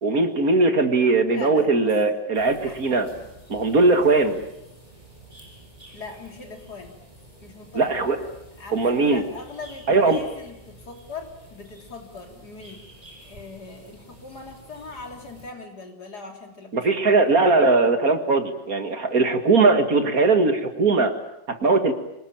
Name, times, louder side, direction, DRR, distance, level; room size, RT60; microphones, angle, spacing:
voice 1, 0.0-3.1 3.5-4.4 7.7-8.2 8.7-9.2 9.9-10.2 16.7-21.1 21.5-21.9, right 3 dB, 50° right, 7 dB, 2.4 m, -19 dB
voice 2, 1.3-1.9 2.6-2.8 5.9-7.0 7.4-7.9 8.6-12.8 13.2-16.9, left 3 dB, 55° left, 3 dB, 3.8 m, -40 dB
sound 1, 2.3-15.5, right 1 dB, 20° right, 7.1 m, -49 dB
26.0 x 20.0 x 8.8 m, 0.86 s
omnidirectional pair, 2.1 m